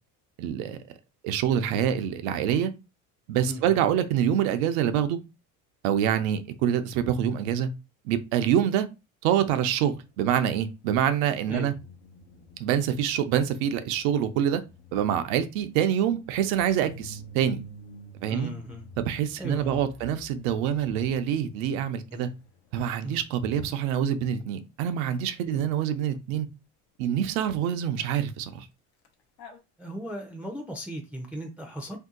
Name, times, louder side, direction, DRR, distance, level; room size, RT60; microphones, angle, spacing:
voice 1, 0.4-0.8 1.2-2.7 3.3-5.2 5.8-7.7 8.0-8.9 9.2-11.7 12.6-14.6 14.9-17.6 18.2-18.5 19.0-22.3 22.7-26.5 27.0-28.7, right 9 dB, 85° right, 0.6 m, -26 dB
voice 2, 3.5-3.9 11.5-11.7 18.3-18.9 19.4-19.8 22.1-22.2 23.0-23.2 25.5-25.7 29.8-32.0, equal, 5° right, 0.5 m, -37 dB
sound 1, 11.5-22.9 29.0-29.1 29.4-29.6, equal, 75° left, 0.9 m, -49 dB
2.7 x 2.2 x 3.7 m
supercardioid pair, 90°, 40 cm